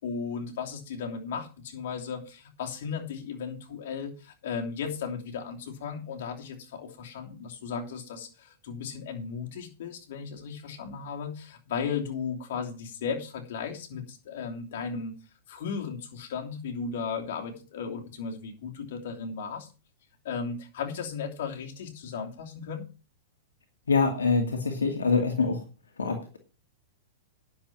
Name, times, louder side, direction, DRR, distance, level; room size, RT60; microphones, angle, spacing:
voice 1, 0.0-15.1 15.5-19.7 20.2-22.8, left 6 dB, 65° left, 2 dB, 2.9 m, -35 dB
voice 2, 23.9-25.6 26.0-26.4, left 4 dB, 85° left, 4 dB, 2.2 m, -25 dB
10.5 x 7.4 x 6.0 m, 0.34 s
hypercardioid pair, 110°, 0 cm